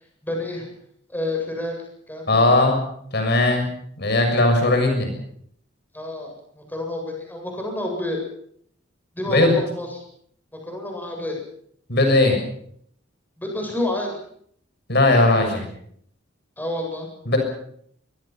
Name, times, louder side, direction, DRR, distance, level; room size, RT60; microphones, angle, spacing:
voice 1, 0.2-0.7 1.1-1.8 2.1-2.6 5.9-8.2 9.1-10.0 10.6-11.4 13.4-14.1 16.6-17.1, left 1 dB, 10° left, 1 dB, 8.0 m, -29 dB
voice 2, 2.3-2.8 3.1-3.7 4.0-5.1 9.3-9.6 11.9-12.4 14.9-15.7 17.3-17.4, left 2 dB, 60° left, 4 dB, 6.6 m, -18 dB
26.0 x 23.0 x 5.9 m, 0.65 s
head